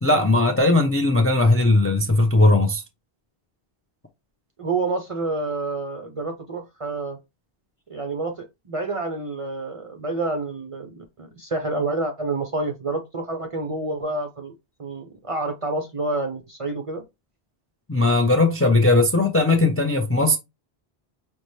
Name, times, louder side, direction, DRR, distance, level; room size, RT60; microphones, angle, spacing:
voice 1, 0.0-2.8 17.9-20.4, left 2 dB, 20° left, 0.4 m, -18 dB
voice 2, 4.6-7.2 7.9-14.5 14.8-17.0, right 3 dB, 45° right, 0.5 m, -28 dB
5.3 x 2.2 x 3.1 m
omnidirectional pair, 1.1 m